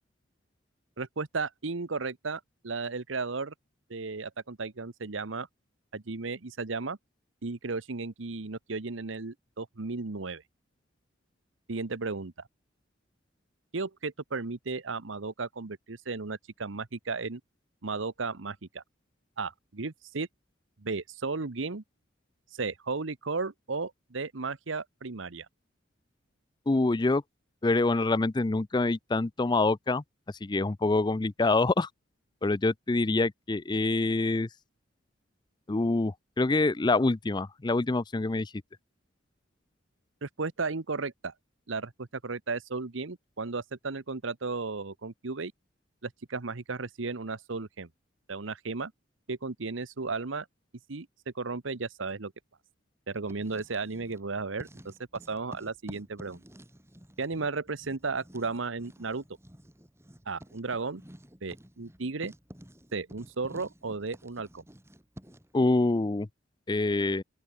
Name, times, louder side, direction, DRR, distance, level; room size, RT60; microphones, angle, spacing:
voice 1, 1.0-3.5 3.9-5.5 5.9-7.0 7.4-10.4 11.7-12.3 13.7-17.4 17.8-18.8 19.4-20.3 20.8-21.8 22.6-25.5 40.2-41.3 41.7-45.5 46.0-47.9 48.3-48.9 49.3-50.5 50.9-51.1 51.3-52.3 53.1-54.9 55.3-56.4 57.2-59.2 60.3-61.0 61.4-62.3 62.9-64.6, right 4 dB, 80° right, 1.1 m, -34 dB
voice 2, 26.7-27.2 27.6-30.0 30.4-31.9 32.4-34.5 35.7-38.5 65.5-66.3 66.7-67.2, left 2 dB, 20° left, 0.5 m, -26 dB
Writing, 53.1-54.3 54.6-65.5, equal, 15° right, 3.5 m, -51 dB
open air
head